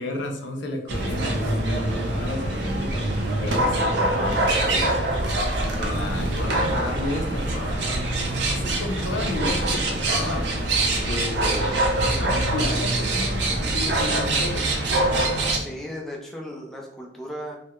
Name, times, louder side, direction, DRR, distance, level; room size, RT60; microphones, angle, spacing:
voice 1, 0.0-7.8 8.4-10.8 11.0-11.7 12.0-14.7, left 2 dB, 85° left, 3 dB, 0.5 m, -33 dB
sound 1, 0.9-15.6, right 2 dB, 65° right, 0.4 m, -24 dB
voice 2, 15.5-17.6, equal, ahead, -2 dB, 0.3 m, -36 dB
2.2 x 2.1 x 2.8 m, 0.78 s
head